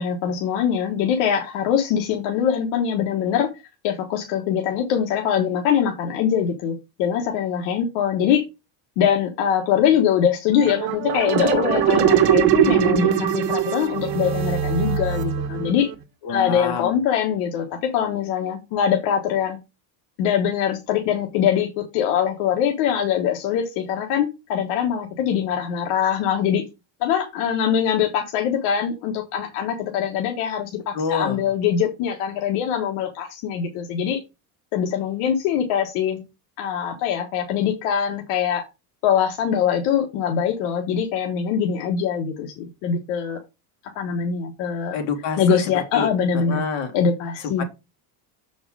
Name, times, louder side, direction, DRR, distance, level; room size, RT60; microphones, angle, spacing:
voice 1, 0.0-3.5 3.8-8.4 9.0-15.9 16.3-19.6 20.2-26.6 27.0-34.2 34.7-36.2 36.6-38.7 39.0-43.4 43.8-45.0 45.4-46.6 46.9-47.6, left 8 dB, 80° left, 2 dB, 1.6 m, -23 dB
sound 1, 10.6-15.9, right 9 dB, 55° right, 1.7 m, -21 dB
voice 2, 16.2-16.9 30.9-31.4 44.9-46.1 46.3-46.9 47.6-47.7, left 6 dB, 60° left, 4 dB, 2.3 m, -27 dB
7.2 x 5.2 x 4.7 m, 0.26 s
cardioid pair, 150°, 47 cm